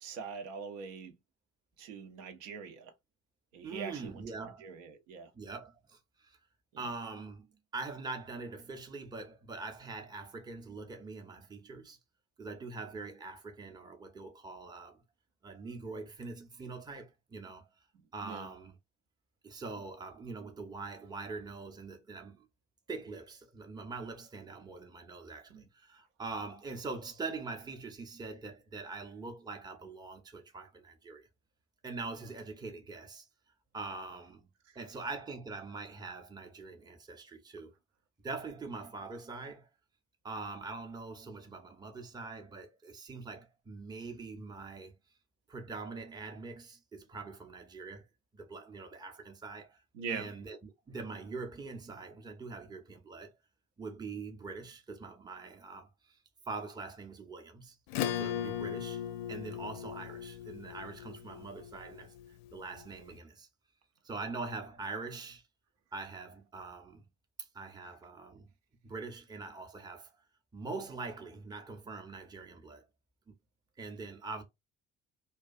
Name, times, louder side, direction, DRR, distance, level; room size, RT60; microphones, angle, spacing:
voice 1, 0.0-1.1 1.8-2.9 3.5-4.2 4.6-5.3 18.2-18.5 25.5-25.6 49.9-50.3, right 5 dB, 75° right, 0.6 m, -42 dB
voice 2, 3.6-4.7 5.3-6.4 6.8-7.5 7.7-12.0 12.4-15.0 15.4-17.7 18.1-18.8 19.4-22.5 22.9-31.3 31.8-33.3 33.7-34.4 34.8-37.7 38.2-39.7 40.2-44.9 45.5-48.0 48.3-49.8 50.1-53.3 53.8-56.2 56.5-57.8 58.1-59.0 59.3-62.1 62.5-63.5 64.0-65.4 65.9-67.0 67.5-68.5 68.8-70.1 70.5-72.8 73.8-74.4, right 3 dB, 10° right, 0.6 m, -43 dB
Acoustic guitar / Strum, 57.9-62.8, left 10 dB, 65° left, 0.5 m, -38 dB
2.3 x 2.3 x 2.5 m
hypercardioid pair, 55°, 39 cm